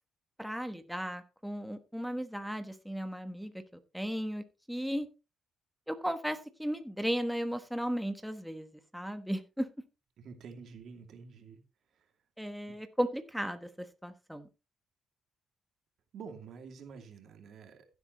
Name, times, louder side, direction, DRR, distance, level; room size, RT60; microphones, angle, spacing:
voice 1, 0.4-3.6 3.9-5.1 5.9-8.7 8.9-9.7 12.4-13.7 14.0-14.5, equal, ahead, 8 dB, 1.2 m, -35 dB
voice 2, 10.2-11.6 11.9-12.1 12.7-12.8 16.1-18.0, right 5 dB, 65° right, 5 dB, 2.6 m, -48 dB
15.5 x 8.2 x 3.1 m, 0.28 s
cardioid pair, 90°, 0 cm